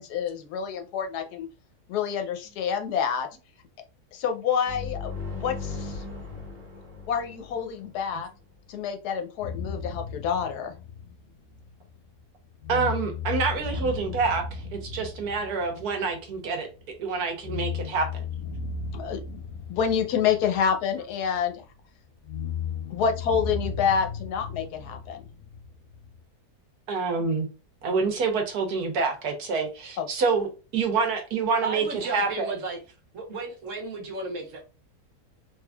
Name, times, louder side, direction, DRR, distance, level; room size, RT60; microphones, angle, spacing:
voice 1, 0.0-1.5 1.9-3.3 4.1-6.0 7.1-8.3 8.7-10.7 18.9-19.4 19.7-21.5 22.9-25.3 30.0-30.1, left 7 dB, 85° left, 1.2 m, -28 dB
sound 1, 4.7-8.4, left 4 dB, 40° right, 1.4 m, -38 dB
sound 2, 9.4-12.2 12.6-16.9 17.4-21.5 22.2-26.2, left 5 dB, 70° left, 0.9 m, -36 dB
voice 2, 12.7-16.7 17.0-18.2 26.9-27.5 27.8-32.5, right 4 dB, 75° right, 1.4 m, -27 dB
voice 3, 31.6-32.8 33.1-34.6, right 3 dB, 60° right, 1.2 m, -34 dB
3.6 x 3.1 x 2.2 m
omnidirectional pair, 1.7 m